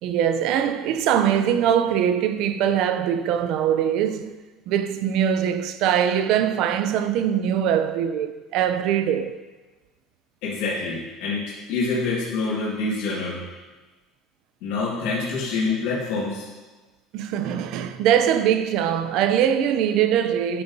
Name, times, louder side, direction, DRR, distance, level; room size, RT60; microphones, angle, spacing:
voice 1, 0.0-4.3 4.7-9.4 17.1-20.6, right 9 dB, 60° right, 0.5 m, -22 dB
voice 2, 10.4-13.4 14.6-16.5, left 3 dB, 80° left, 2.0 m, -26 dB
11.5 x 6.6 x 2.7 m
cardioid pair, 165°, 0 cm